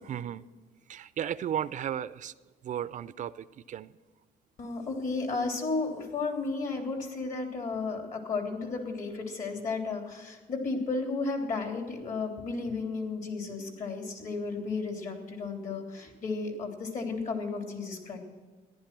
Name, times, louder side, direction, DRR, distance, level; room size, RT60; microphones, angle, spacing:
voice 1, 0.0-0.5 0.9-2.3 2.6-3.9, right 10 dB, 50° right, 15 dB, 0.5 m, -34 dB
voice 2, 4.6-18.2, left 3 dB, 50° left, 3 dB, 3.2 m, -33 dB
14.5 x 11.0 x 6.0 m, 1.4 s
cardioid pair, 110°, 17 cm